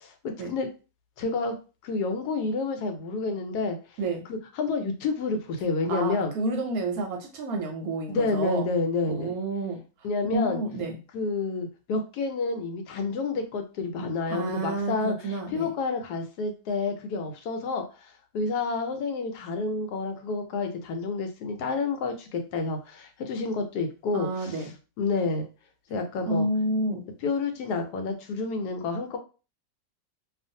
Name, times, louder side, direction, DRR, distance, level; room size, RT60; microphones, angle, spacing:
voice 1, 0.2-0.7 1.2-1.6 1.8-3.8 4.3-6.3 8.1-9.4 10.0-10.6 11.1-24.6 25.0-25.5 25.9-26.5 27.2-29.2, left 3 dB, 75° left, 5 dB, 1.1 m, -29 dB
voice 2, 5.9-8.7 9.1-9.8 10.3-11.0 14.3-15.7 24.1-24.7 26.3-27.0, right 2 dB, 70° right, 2 dB, 1.0 m, -29 dB
2.5 x 2.4 x 2.6 m, 0.33 s
omnidirectional pair, 1.8 m